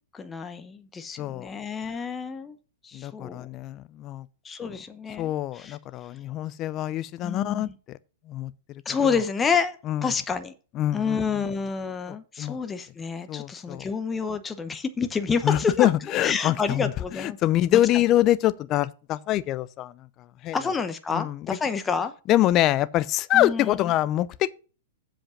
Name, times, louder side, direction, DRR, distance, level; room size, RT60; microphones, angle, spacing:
voice 1, 0.1-2.6 2.8-3.5 4.4-5.8 7.2-7.7 8.8-10.5 10.9-15.9 16.2-17.4 17.7-17.8 20.5-22.1 23.3-23.8, left 5 dB, 15° left, 0.9 m, -29 dB
voice 2, 1.2-1.5 2.9-4.3 4.6-4.8 5.2-8.0 8.3-8.5 9.9-10.1 10.8-11.5 12.4-12.6 13.3-13.8 15.4-16.9 17.2-19.9 20.4-20.6 21.1-21.6 22.3-24.5, left 14 dB, 30° left, 0.6 m, -25 dB
7.6 x 5.1 x 6.9 m
hypercardioid pair, 135°, 0 cm